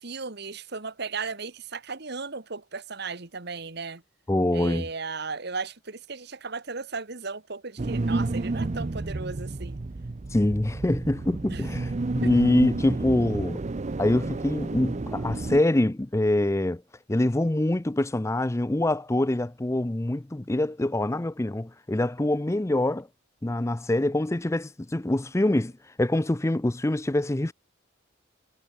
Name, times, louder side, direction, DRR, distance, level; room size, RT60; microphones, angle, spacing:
voice 1, 0.0-4.0 4.5-9.8 11.5-11.6 12.2-12.3, right 4 dB, 60° right, 1.8 m, -36 dB
voice 2, 4.3-4.9 10.3-13.6 14.0-16.8 17.1-23.1 23.4-25.7 26.0-27.5, left 1 dB, 15° left, 0.5 m, -25 dB
sound 1, 7.8-15.6, right 2 dB, 35° right, 0.5 m, -30 dB
head